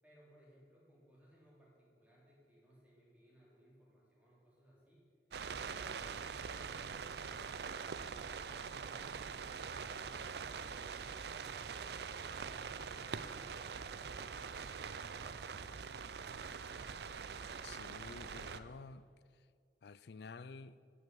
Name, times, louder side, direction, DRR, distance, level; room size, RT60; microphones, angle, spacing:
voice 1, 0.0-5.1 10.9-16.7, equal, 10° right, 3.4 m, -65 dB
sound 1, 5.3-18.6, right 6 dB, 65° right, 0.5 m, -44 dB
voice 2, 17.6-19.1 19.8-20.8, left 4 dB, 65° left, 0.4 m, -51 dB
11.5 x 6.3 x 8.9 m
head